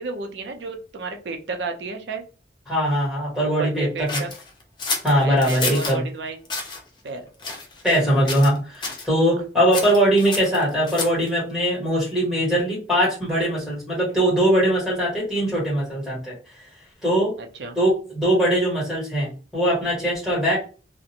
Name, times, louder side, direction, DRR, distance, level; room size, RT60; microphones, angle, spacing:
voice 1, 0.0-2.2 3.4-4.3 5.2-6.4 7.0-7.2 17.4-17.8, right 3 dB, 85° right, 4 dB, 0.5 m, -32 dB
voice 2, 2.7-4.1 5.0-6.0 7.8-16.3 17.0-17.3 17.7-20.6, equal, ahead, -6 dB, 1.4 m, -21 dB
sound 1, 4.1-6.0 6.4-6.8 7.4-8.0 8.3-8.6 8.8-9.1 9.7-11.3, left 3 dB, 25° left, 0.4 m, -29 dB
2.5 x 2.1 x 2.7 m, 0.36 s
head